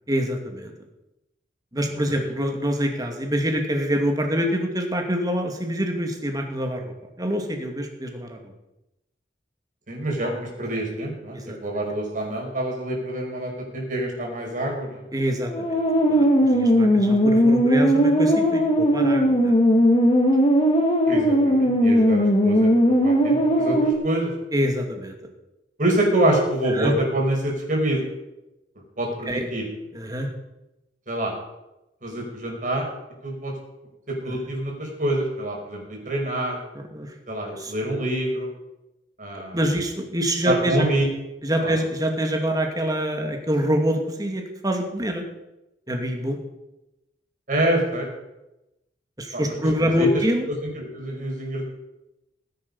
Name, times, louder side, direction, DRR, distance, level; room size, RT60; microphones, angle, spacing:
voice 1, 0.1-0.7 1.7-8.4 11.3-11.6 15.1-15.8 16.1-19.5 24.5-25.1 26.7-26.9 29.3-29.5 29.9-30.3 34.3-34.4 36.7-37.1 37.6-37.7 39.5-40.9 41.4-45.3 45.9-46.4 49.2-50.5, equal, 20° right, 3 dB, 2.4 m, -25 dB
voice 2, 9.9-15.0 21.1-24.3 25.8-28.0 29.0-29.6 31.1-31.3 32.0-32.9 33.2-33.5 34.1-36.6 37.3-38.5 39.2-39.6 40.5-41.1 41.6-41.7 47.5-48.1 49.3-49.5 49.8-50.1 50.5-51.6, right 1 dB, 50° right, 0 dB, 5.3 m, -26 dB
sound 1, 15.4-23.9, equal, 35° left, 2.1 m, -18 dB
18.0 x 10.5 x 5.5 m, 0.96 s
head